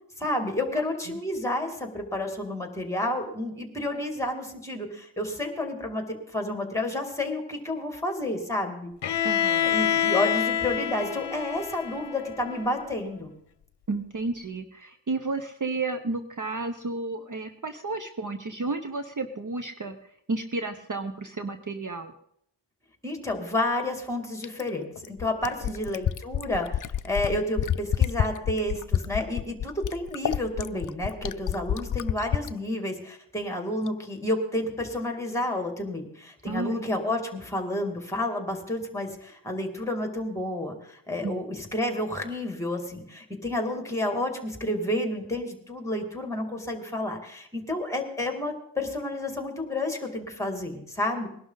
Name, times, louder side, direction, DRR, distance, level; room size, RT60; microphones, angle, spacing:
voice 1, 0.2-6.0 6.3-8.9 9.6-13.3 23.0-51.3, left 1 dB, 5° left, 4 dB, 2.6 m, -30 dB
Bowed string instrument, 9.0-12.9, left 9 dB, 65° left, 0.8 m, -27 dB
voice 2, 9.2-9.7 13.9-20.0 20.3-22.1 25.7-25.8 36.5-36.8 41.2-41.3, right 3 dB, 40° right, 7 dB, 1.0 m, -32 dB
Fill (with liquid), 24.4-32.5 33.9-34.0, left 10 dB, 45° left, 0.4 m, -28 dB
20.5 x 11.5 x 4.0 m, 0.72 s
wide cardioid pair, 90°, 46 cm